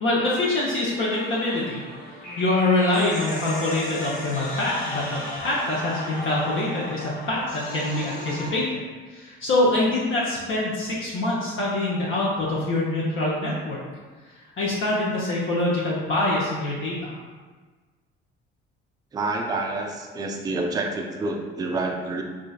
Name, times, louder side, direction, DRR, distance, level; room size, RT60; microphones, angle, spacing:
voice 1, 0.0-1.8 2.4-8.8 9.1-13.8 14.6-17.2, left 2 dB, 40° left, -6 dB, 0.8 m, -25 dB
sound 1, 1.1-8.5, left 1 dB, 65° left, 1.3 m, -35 dB
voice 2, 19.1-22.2, right 2 dB, 10° right, 1 dB, 0.4 m, -28 dB
5.0 x 2.5 x 2.3 m, 1.4 s
figure-of-eight pair, 50°, 32 cm